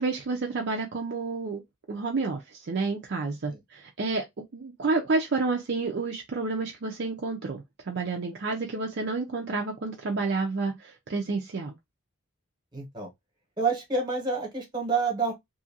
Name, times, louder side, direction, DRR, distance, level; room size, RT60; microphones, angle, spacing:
voice 1, 0.0-1.6 1.9-4.2 4.5-11.7, right 3 dB, 50° right, 0.4 m, -30 dB
voice 2, 12.7-13.1 13.6-15.3, right 4 dB, 20° right, 1.0 m, -28 dB
2.7 x 2.5 x 2.7 m
head